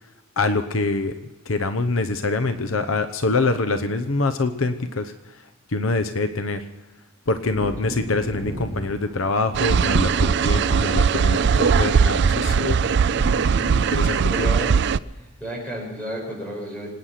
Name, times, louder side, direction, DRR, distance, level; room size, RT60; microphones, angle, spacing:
voice 1, 0.4-1.1 1.5-5.1 5.7-6.6 7.3-12.8 13.9-14.5, left 3 dB, 70° left, 9 dB, 0.9 m, -24 dB
Wind / Thunder, 7.3-15.6 15.9-16.0, equal, 50° left, 3.5 m, -36 dB
sound 1, 9.5-15.0, right 6 dB, 55° right, 0.4 m, -19 dB
Bowed string instrument, 9.6-15.1, right 2 dB, 25° right, 1.2 m, -39 dB
voice 2, 14.3-14.8 15.1-16.9, right 1 dB, 5° left, -1 dB, 6.1 m, -32 dB
26.0 x 9.5 x 5.8 m, 1.2 s
head